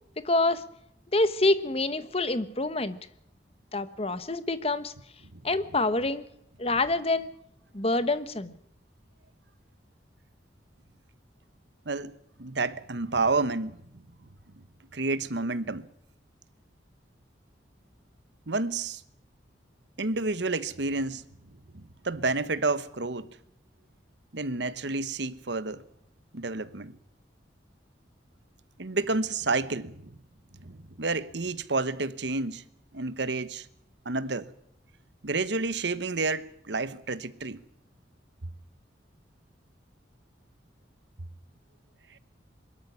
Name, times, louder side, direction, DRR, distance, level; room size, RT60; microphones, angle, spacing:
voice 1, 0.2-0.6 1.1-3.0 3.7-4.9 5.4-6.2 6.6-7.3 7.7-8.5, left 2 dB, 30° left, 1.2 m, -26 dB
voice 2, 11.9-13.8 14.9-15.9 18.5-19.0 20.0-21.2 21.7-23.3 24.3-25.8 26.3-27.0 28.8-30.2 30.6-32.6 32.9-33.7 34.0-34.5 35.2-37.6, right 3 dB, 70° right, 1.1 m, -30 dB
22.5 x 13.0 x 9.8 m
head